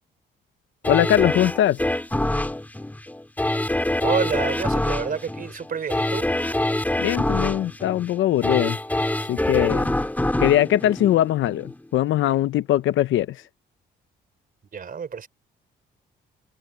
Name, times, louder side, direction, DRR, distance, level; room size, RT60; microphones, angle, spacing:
voice 1, 0.8-1.8 7.0-8.8 9.3-9.9 10.4-13.4, left 12 dB, 75° left, 0.8 m, -21 dB
sound 1, 0.8-11.8 12.2-12.3, left 1 dB, 10° left, 2.6 m, -25 dB
voice 2, 4.0-6.3 14.7-15.3, right 6 dB, 45° right, 3.9 m, -28 dB
cardioid pair, 90°, 20 cm